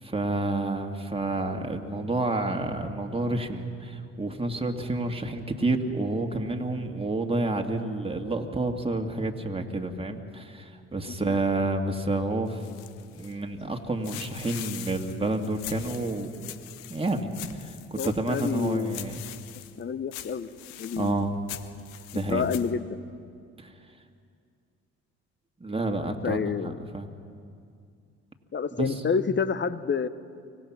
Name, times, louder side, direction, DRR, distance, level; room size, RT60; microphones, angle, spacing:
voice 1, 0.0-12.6 13.1-16.5 16.9-17.3 17.6-19.2 21.0-21.3 22.1-22.5 23.6-23.7 25.6-26.5 26.9-27.1 28.8-29.0, right 2 dB, 15° right, 3 dB, 2.1 m, -29 dB
sound 1, 12.5-13.6 14.0-19.8 20.1-22.7, left 14 dB, 80° left, 0.8 m, -43 dB
voice 2, 18.0-19.0 19.8-20.5 20.8-21.3 22.3-23.0 26.2-26.8 28.5-30.1, left 6 dB, 35° left, 15 dB, 0.9 m, -28 dB
25.0 x 17.0 x 6.1 m, 2.3 s
hypercardioid pair, 50°, 34 cm